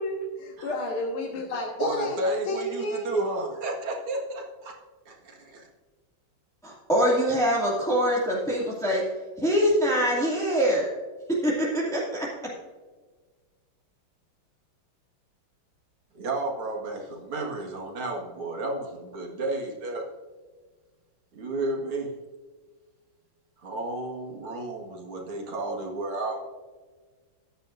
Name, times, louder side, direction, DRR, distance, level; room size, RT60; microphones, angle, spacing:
voice 1, 0.0-2.2 2.5-3.1, left 1 dB, 85° left, -1 dB, 2.4 m, -31 dB
voice 2, 1.8-4.7 5.1-5.7 16.2-20.1 21.3-22.1 23.6-26.4, right 2 dB, 80° right, 0 dB, 2.8 m, -32 dB
voice 3, 6.6-9.0 9.4-10.9 11.3-12.3, equal, ahead, -6 dB, 2.2 m, -24 dB
14.5 x 10.5 x 2.6 m, 1.4 s
omnidirectional pair, 2.3 m